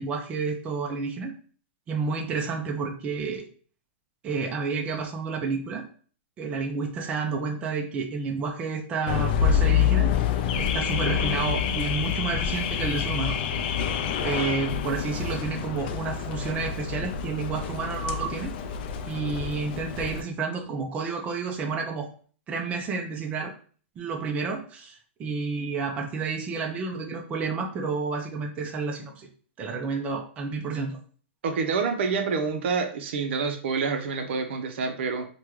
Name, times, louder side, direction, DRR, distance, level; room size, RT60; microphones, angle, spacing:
voice 1, 0.0-1.3 1.9-3.4 4.2-5.8 6.4-10.1 10.6-13.4 14.2-18.5 19.1-22.1 22.5-23.5 24.0-29.3 29.6-31.0, right 4 dB, 20° right, 2 dB, 0.4 m, -30 dB
Car / Alarm, 9.1-20.2, left 8 dB, 50° left, 0.4 m, -27 dB
voice 2, 31.4-35.3, right 5 dB, 60° right, 6 dB, 0.6 m, -27 dB
3.4 x 2.2 x 3.0 m, 0.44 s
hypercardioid pair, 150°, 7 cm